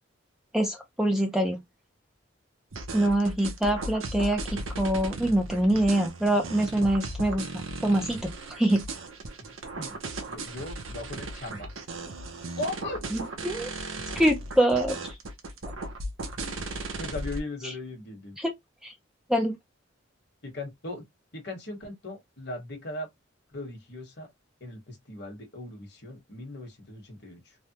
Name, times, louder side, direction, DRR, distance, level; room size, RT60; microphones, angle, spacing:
voice 1, 0.5-1.6 2.9-7.5 7.8-8.9 13.4-13.7 14.2-15.2 17.6-17.7 18.4-18.5 18.8-18.9 19.3-19.6, right 1 dB, ahead, 0.5 m, -25 dB
sound 1, 2.7-17.4, right 2 dB, 90° right, 0.8 m, -36 dB
voice 2, 10.3-11.7 12.6-13.0 16.4-16.5 17.0-18.4 20.4-21.0 21.3-23.1 23.5-24.3 24.6-27.6, left 2 dB, 55° left, 1.3 m, -38 dB
3.3 x 2.2 x 2.8 m
head